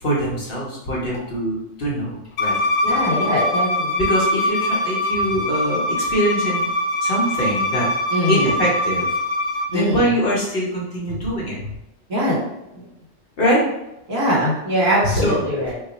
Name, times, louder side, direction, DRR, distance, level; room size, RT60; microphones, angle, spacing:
voice 1, 0.0-2.6 4.0-6.6 7.0-7.9 8.3-9.1 9.7-11.6 13.4-13.6 15.1-15.5, equal, 50° left, -4 dB, 0.9 m, -23 dB
Bowed string instrument, 2.4-9.7, left 1 dB, 85° left, 1.1 m, -22 dB
voice 2, 2.8-3.9 8.1-8.6 9.7-10.1 12.1-12.4 12.7-12.8 14.1-15.7, equal, 70° right, -5 dB, 1.6 m, -22 dB
3.0 x 2.3 x 3.9 m, 0.88 s
omnidirectional pair, 1.4 m